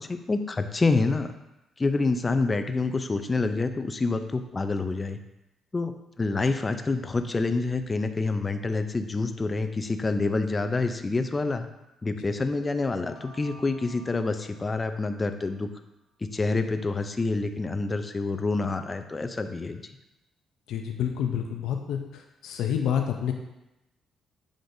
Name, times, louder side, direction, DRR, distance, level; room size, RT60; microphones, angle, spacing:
voice 1, 0.0-1.3 1.8-5.2 5.7-5.9 6.2-11.7 12.0-15.7 16.3-19.8, left 3 dB, 25° left, 8 dB, 0.5 m, -27 dB
sound 1, 12.9-15.7, left 1 dB, 55° left, 0.9 m, -52 dB
voice 2, 20.7-23.3, left 8 dB, 80° left, 3 dB, 0.5 m, -28 dB
7.6 x 5.0 x 2.7 m, 0.93 s
cardioid pair, 90°, 0 cm